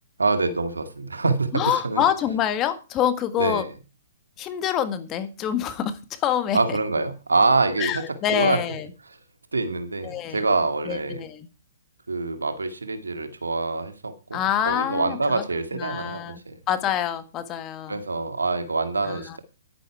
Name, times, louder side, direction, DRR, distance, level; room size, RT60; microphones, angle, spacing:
voice 1, 0.2-2.0 3.4-3.7 6.5-8.0 8.3-8.6 9.5-11.2 12.1-16.6 17.9-19.4, right 3 dB, 90° right, 9 dB, 2.0 m, -25 dB
voice 2, 1.5-3.6 4.4-6.8 7.8-8.9 10.0-10.4 10.8-11.5 14.3-15.4 15.7-16.4 16.7-18.0 19.0-19.4, left 10 dB, 25° left, 11 dB, 1.6 m, -26 dB
11.0 x 10.5 x 4.8 m, 0.32 s
hypercardioid pair, 130°, 0 cm